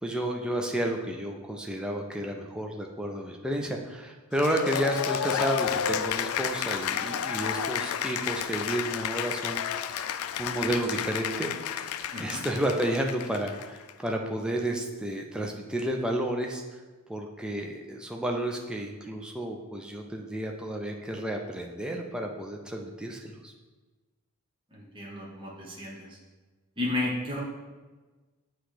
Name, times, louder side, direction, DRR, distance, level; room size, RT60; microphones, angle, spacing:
voice 1, 0.0-9.6 9.9-10.1 10.4-11.9 12.2-16.8 17.1-23.5, right 1 dB, 5° right, 1 dB, 0.5 m, -31 dB
Cheering / Applause, 4.3-13.9, left 8 dB, 80° left, 0.3 m, -31 dB
voice 2, 12.1-12.4 24.9-26.0 26.8-27.4, left 2 dB, 25° right, -4 dB, 1.0 m, -32 dB
7.8 x 3.0 x 4.9 m, 1.3 s
head